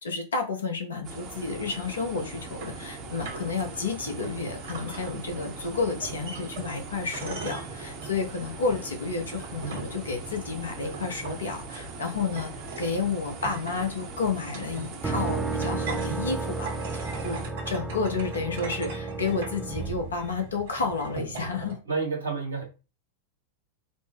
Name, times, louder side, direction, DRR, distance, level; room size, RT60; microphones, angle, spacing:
voice 1, 0.0-17.4 17.7-21.8, left 4 dB, 75° left, 3 dB, 0.8 m, -31 dB
sound 1, 1.0-17.5, right 3 dB, 40° right, 0.7 m, -41 dB
sound 2, 2.2-21.8, right 4 dB, 60° right, 1.2 m, -42 dB
sound 3, 15.0-20.9, right 3 dB, 10° right, 0.4 m, -33 dB
voice 2, 21.8-22.6, right 4 dB, 80° right, 1 dB, 1.1 m, -29 dB
4.1 x 2.0 x 3.3 m, 0.31 s
figure-of-eight pair, 90°, 0 cm